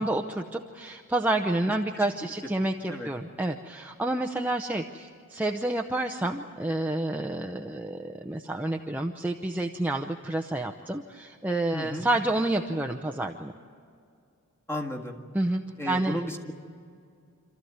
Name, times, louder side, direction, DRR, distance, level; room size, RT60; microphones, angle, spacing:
voice 1, 0.0-13.5 15.3-16.2, right 2 dB, 10° right, 2 dB, 0.7 m, -29 dB
voice 2, 11.7-12.1 14.7-15.2 15.8-16.5, left 1 dB, 10° left, 2 dB, 1.8 m, -33 dB
27.5 x 14.0 x 9.5 m, 2.3 s
head